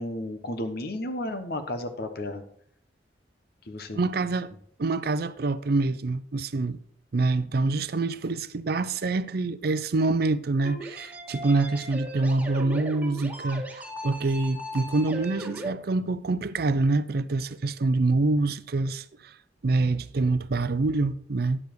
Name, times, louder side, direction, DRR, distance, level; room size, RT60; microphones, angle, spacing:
voice 1, 0.0-2.4 3.7-4.0, left 1 dB, 60° left, 1.1 m, -33 dB
voice 2, 3.9-4.5 4.8-6.8 7.1-19.3 19.6-21.6, right 3 dB, 60° right, 0.5 m, -26 dB
sound 1, 10.6-15.7, right 1 dB, 10° right, 1.7 m, -37 dB
9.8 x 7.0 x 4.6 m
head